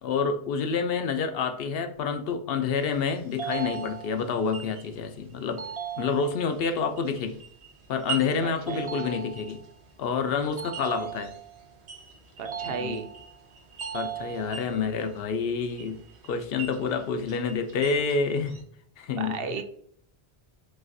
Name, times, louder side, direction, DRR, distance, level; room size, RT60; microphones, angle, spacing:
voice 1, 0.0-5.6 6.0-7.4 7.9-9.6 10.0-11.3 12.7-13.0 13.9-16.0 16.3-18.6 19.0-19.3, left 5 dB, 65° left, 0.8 m, -28 dB
sound 1, 2.7-18.6, right 7 dB, 90° right, 1.2 m, -45 dB
sound 2, 3.4-4.4 5.6-6.6 8.7-9.7 10.6-11.6 12.4-13.4 13.8-14.8, right 8 dB, 40° right, 0.5 m, -37 dB
voice 2, 8.4-8.9 12.4-13.1 19.1-19.6, right 4 dB, 65° right, 0.8 m, -34 dB
6.3 x 2.4 x 2.6 m
omnidirectional pair, 1.1 m